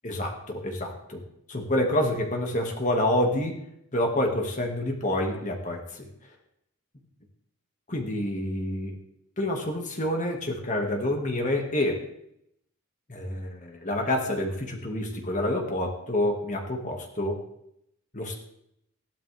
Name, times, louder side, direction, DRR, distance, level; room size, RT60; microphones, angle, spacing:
voice 1, 0.0-1.2 1.5-3.6 3.9-6.1 7.9-9.0 9.4-12.0 13.1-17.4 18.1-18.3, left 1 dB, 35° left, 2 dB, 2.0 m, -28 dB
16.5 x 12.0 x 3.5 m, 0.75 s
head